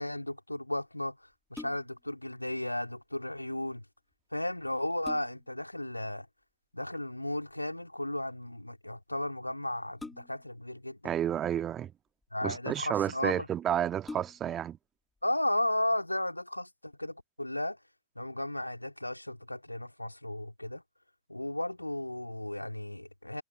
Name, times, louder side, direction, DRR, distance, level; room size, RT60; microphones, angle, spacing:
voice 1, 0.0-3.8 4.3-6.3 6.7-11.1 12.3-13.5 15.2-17.8 18.1-20.8 21.3-23.4, left 1 dB, 85° left, 3.2 m, -34 dB
sound 1, 1.3-2.1 4.1-4.2 4.7-5.6 7.2-7.5 10.0-10.6 11.6-12.3 13.0-13.1 13.4-13.5 14.0-14.7 15.2-15.3, left 2 dB, 10° left, 2.3 m, -46 dB
voice 2, 11.0-11.9 12.4-14.8, right 10 dB, 30° right, 1.6 m, -31 dB
figure-of-eight pair, 90°, 0 cm